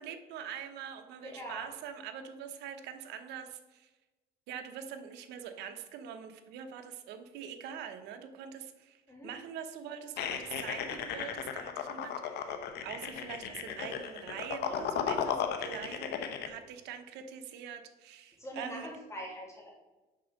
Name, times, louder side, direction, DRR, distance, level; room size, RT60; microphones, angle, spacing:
voice 1, 0.0-3.9 4.5-12.5 12.8-16.1 16.5-18.9, right 8 dB, 85° right, 7 dB, 1.0 m, -44 dB
voice 2, 1.2-1.7 9.1-9.3 16.2-16.4 18.4-19.7, equal, 15° left, -2 dB, 2.2 m, -43 dB
sound 1, 10.2-16.5, left 8 dB, 75° left, 0.9 m, -36 dB
6.6 x 5.3 x 6.4 m, 1.1 s
cardioid pair, 110°, 17 cm